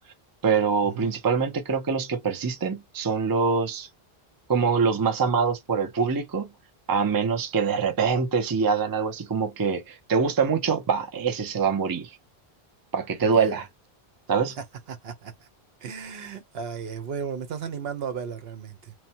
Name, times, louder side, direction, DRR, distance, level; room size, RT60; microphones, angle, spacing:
voice 1, 0.4-3.9 4.5-6.5 6.9-12.2 12.9-13.7 14.3-14.6, right 5 dB, 30° right, 0.5 m, -24 dB
voice 2, 13.2-13.6 14.9-15.5 15.8-18.9, right 6 dB, 75° right, 1.0 m, -35 dB
3.1 x 2.1 x 2.8 m
omnidirectional pair, 1.0 m